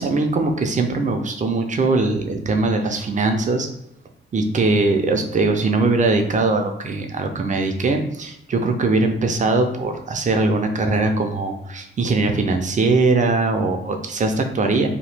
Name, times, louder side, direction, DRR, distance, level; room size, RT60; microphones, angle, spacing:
voice 1, 0.0-3.7 4.3-14.9, right 3 dB, 35° right, 4 dB, 0.5 m, -21 dB
2.9 x 2.3 x 3.2 m, 0.82 s
wide cardioid pair, 120°, 21 cm